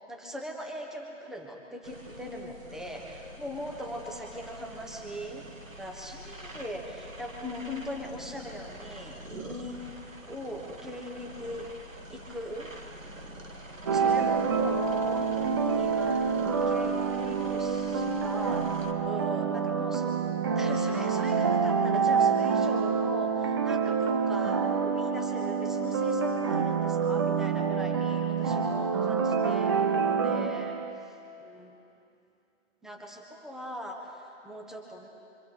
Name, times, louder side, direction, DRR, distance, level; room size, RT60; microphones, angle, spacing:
voice 1, 0.1-5.5 5.8-10.0 10.3-11.7 12.1-12.7 13.9-18.7 19.0-20.2 20.5-31.1 31.4-31.7 32.8-35.1, equal, ahead, 1 dB, 1.2 m, -40 dB
sound 1, 1.8-18.9, right 1 dB, 85° right, 1.8 m, -45 dB
sound 2, 13.9-31.1, right 5 dB, 20° right, 0.5 m, -27 dB
25.5 x 25.5 x 4.2 m, 2.7 s
figure-of-eight pair, 130°, 38 cm